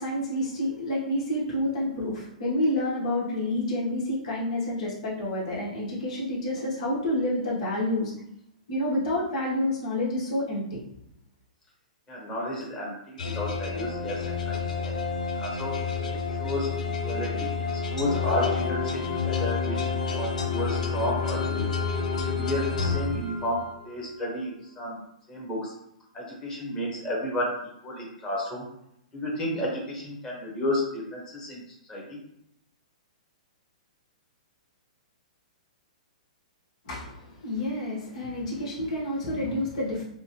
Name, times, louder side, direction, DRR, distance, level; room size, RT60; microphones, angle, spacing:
voice 1, 0.0-8.1 8.7-10.8 36.8-40.0, left 1 dB, 55° left, -5 dB, 1.3 m, -29 dB
voice 2, 12.1-14.9 15.3-15.8 16.3-21.7 22.2-25.0 25.3-25.7 26.1-27.5 27.8-28.6 29.1-32.2, left 1 dB, 20° left, -4 dB, 1.4 m, -32 dB
sound 1, 13.2-23.8, left 5 dB, 70° left, 0.6 m, -29 dB
5.2 x 2.2 x 3.0 m, 0.78 s
hypercardioid pair, 120°, 4 cm